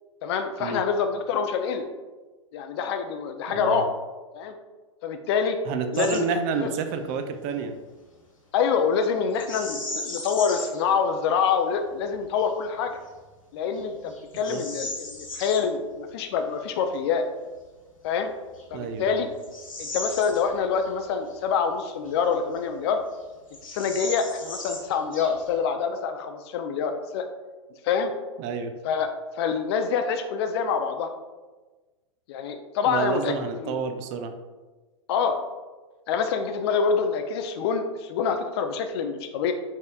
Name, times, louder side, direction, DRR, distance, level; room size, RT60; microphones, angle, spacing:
voice 1, 0.2-1.9 2.5-3.9 4.3-4.5 5.0-5.6 5.9-6.3 6.6-6.7 8.5-12.9 13.5-17.3 18.0-18.3 18.7-19.3 19.8-23.0 23.7-27.3 27.8-28.1 28.8-29.1 29.4-31.1 32.3-33.7 35.1-35.4 36.1-39.5, left 6 dB, 50° left, 7 dB, 0.4 m, -26 dB
voice 2, 3.5-3.8 5.7-7.7 14.5-14.6 18.7-19.3 28.4-28.7 32.9-34.3, right 5 dB, 40° right, 7 dB, 0.4 m, -29 dB
Bird vocalization bird call bird song, 5.9-6.2 6.5-6.8 9.3-10.8 11.4-11.5 12.1-12.5 13.1-13.2 13.7-15.6 17.7-17.8 18.5-20.9 21.3-21.4 22.1-22.9 23.1-23.2 23.5-25.6, left 2 dB, 90° left, 0.9 m, -37 dB
4.1 x 3.6 x 2.3 m, 1.3 s
hypercardioid pair, 105°, 17 cm